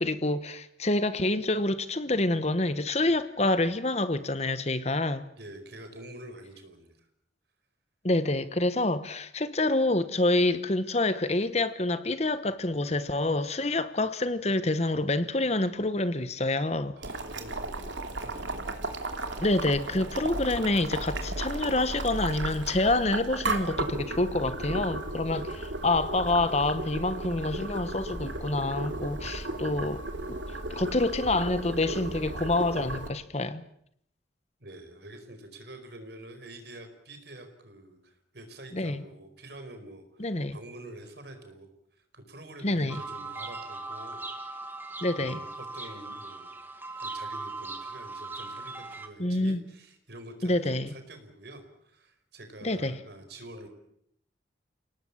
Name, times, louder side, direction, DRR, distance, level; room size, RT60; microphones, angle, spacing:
voice 1, 0.0-5.3 8.0-16.9 19.4-25.5 25.8-30.0 30.8-33.6 38.7-39.0 40.2-40.6 42.6-43.0 45.0-45.4 49.2-49.6 50.4-50.9 52.6-53.0, left 2 dB, 35° left, 1.1 m, -27 dB
voice 2, 5.4-7.1 16.9-18.6 18.9-19.3 25.3-25.7 34.6-41.7 42.0-44.2 45.2-46.5 47.0-53.7, right 1 dB, 60° right, 4.8 m, -47 dB
Boiling, 17.0-33.1, right 2 dB, 75° right, 2.9 m, -35 dB
sound 1, 42.9-49.1, right 3 dB, 10° right, 1.9 m, -39 dB
29.0 x 18.5 x 8.6 m
head